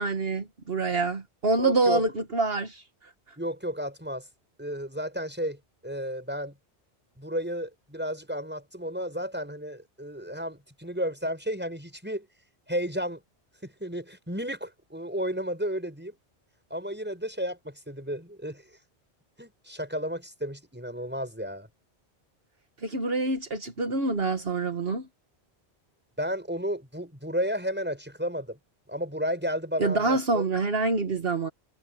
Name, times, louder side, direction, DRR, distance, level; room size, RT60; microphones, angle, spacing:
voice 1, 0.0-2.8 22.8-25.1 29.8-31.5, right 3 dB, 65° right, 1.7 m, -26 dB
voice 2, 1.6-2.0 3.4-4.3 4.6-6.6 7.2-12.3 12.7-13.2 13.6-16.2 16.7-18.6 19.4-21.7 26.2-28.6 28.9-30.4, equal, 10° right, 6.4 m, -32 dB
omnidirectional pair, 1.1 m